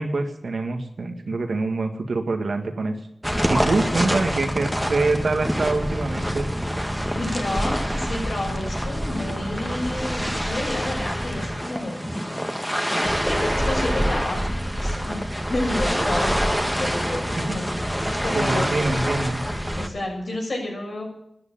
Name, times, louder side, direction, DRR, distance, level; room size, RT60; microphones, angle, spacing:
voice 1, 0.0-3.0 3.5-6.5 17.5-17.6 18.3-19.4, right 3 dB, 80° right, 4 dB, 2.0 m, -25 dB
sound 1, 3.2-19.9, equal, ahead, 1.9 m, -26 dB
voice 2, 3.6-4.0 7.1-12.1 13.3-15.2 15.5-18.9 19.8-21.1, left 1 dB, 70° left, 0 dB, 6.9 m, -30 dB
13.0 x 9.7 x 9.0 m, 0.77 s
cardioid pair, 45°, 0 cm